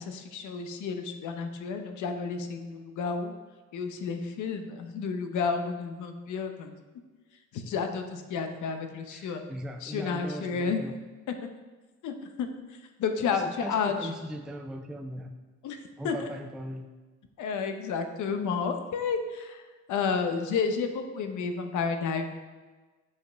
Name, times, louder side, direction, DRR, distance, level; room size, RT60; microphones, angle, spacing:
voice 1, 0.0-3.3 3.7-6.7 7.5-9.4 9.8-10.8 12.0-14.1 15.6-16.3 17.4-22.3, left 5 dB, 85° left, 6 dB, 0.9 m, -31 dB
voice 2, 9.1-10.9 13.3-15.3 16.0-16.9, equal, ahead, 4 dB, 0.4 m, -39 dB
7.4 x 5.3 x 4.5 m, 1.3 s
cardioid pair, 110°, 29 cm